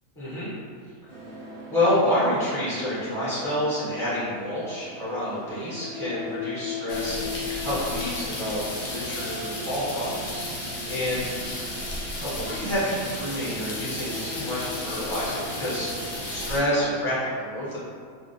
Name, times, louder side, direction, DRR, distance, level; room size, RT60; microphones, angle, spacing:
voice 1, 0.2-0.5 1.7-7.3 7.6-11.2 12.2-17.8, left 1 dB, 5° left, -11 dB, 0.4 m, -28 dB
sound 1, 1.1-17.2, left 2 dB, 50° right, 0.5 m, -39 dB
sound 2, 6.9-16.6, left 1 dB, 70° left, 0.9 m, -34 dB
2.4 x 2.0 x 2.5 m, 2.1 s
omnidirectional pair, 1.5 m